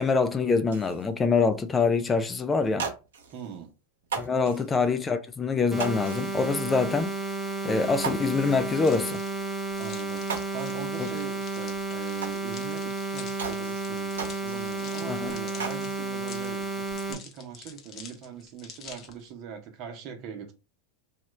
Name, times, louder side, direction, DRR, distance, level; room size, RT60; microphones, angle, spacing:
voice 1, 0.0-2.9 4.2-7.1 7.6-9.2 11.0-11.1 15.0-15.4, left 4 dB, 20° left, 0.4 m, -25 dB
sound 1, 0.7-1.1 1.7-1.9 2.1-2.2 2.6-3.6 4.0-5.0 5.8-6.6 7.0-7.1 7.5-7.6 8.0-9.0 9.7-9.8 10.1-11.2 11.5-11.6 12.2-12.9 13.4-15.0 15.3-16.1 16.5-17.1, right 6 dB, 80° right, 0.8 m, -38 dB
voice 2, 3.3-3.7 4.5-4.6 9.8-20.5, right 7 dB, 50° right, 0.9 m, -42 dB
sound 2, 5.7-17.1, right 3 dB, 5° right, 0.8 m, -32 dB
sound 3, 8.8-19.3, left 6 dB, 40° left, 0.8 m, -48 dB
2.9 x 2.3 x 3.1 m
hypercardioid pair, 100°, 0 cm